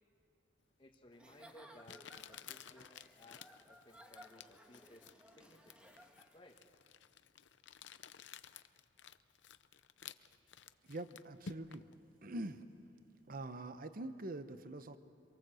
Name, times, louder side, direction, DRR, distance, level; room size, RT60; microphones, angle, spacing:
voice 1, 0.8-6.1 6.3-6.6, left 1 dB, 30° left, 0 dB, 1.4 m, -61 dB
Crumpling crinkling, 0.9-1.0 1.8-11.9, left 7 dB, 80° left, 0.7 m, -54 dB
Giggle / Chuckle chortle, 1.1-6.6, equal, 5° right, 1.5 m, -60 dB
voice 2, 10.9-11.8 12.2-12.6 13.3-15.0, right 2 dB, 50° right, 11 dB, 0.9 m, -44 dB
27.0 x 23.0 x 7.7 m, 2.4 s
head